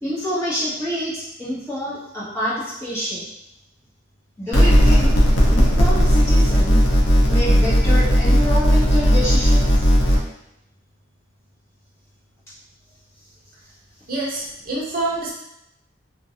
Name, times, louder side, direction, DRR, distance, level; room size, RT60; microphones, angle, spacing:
voice 1, 0.0-3.3 4.4-5.2 5.5-6.8 7.3-9.9, equal, 15° left, -11 dB, 1.0 m, -27 dB
sound 1, 4.5-10.2, equal, 70° left, 0.6 m, -15 dB
voice 2, 14.1-15.3, right 2 dB, 45° right, -3 dB, 0.7 m, -26 dB
2.5 x 2.2 x 2.7 m, 0.82 s
head